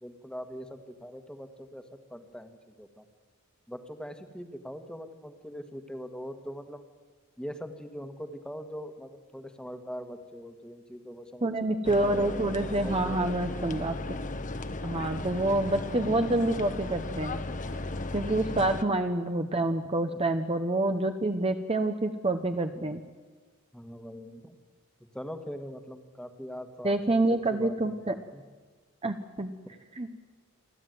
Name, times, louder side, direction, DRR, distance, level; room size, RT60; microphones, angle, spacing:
voice 1, 0.0-3.1 3.7-6.9 7.4-11.5 12.8-13.4 20.1-20.2 22.7-22.9 23.7-24.6 25.1-28.4, equal, 5° left, 8 dB, 1.5 m, -42 dB
voice 2, 11.4-13.9 14.8-17.4 18.1-23.0 26.8-28.1 29.0-29.5 30.0-30.1, right 2 dB, 25° right, 7 dB, 0.9 m, -27 dB
sound 1, 11.8-18.8, left 2 dB, 35° left, 1.1 m, -35 dB
28.5 x 12.5 x 9.3 m, 1.4 s
head